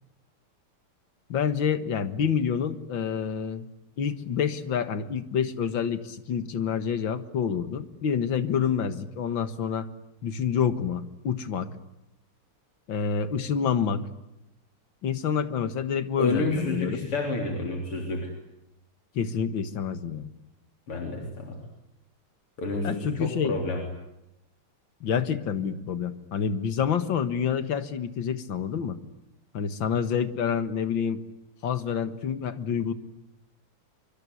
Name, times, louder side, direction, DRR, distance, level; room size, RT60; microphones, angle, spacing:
voice 1, 1.3-3.7 4.0-9.9 10.2-11.7 12.9-14.1 15.0-17.0 19.2-20.3 22.8-23.5 25.0-29.0 29.5-31.2 31.6-32.9, left 7 dB, 60° left, 12 dB, 2.2 m, -28 dB
voice 2, 16.2-18.3 20.9-21.6 22.6-23.8, left 2 dB, 85° left, 3 dB, 4.5 m, -29 dB
25.0 x 24.5 x 9.7 m, 0.87 s
omnidirectional pair, 2.4 m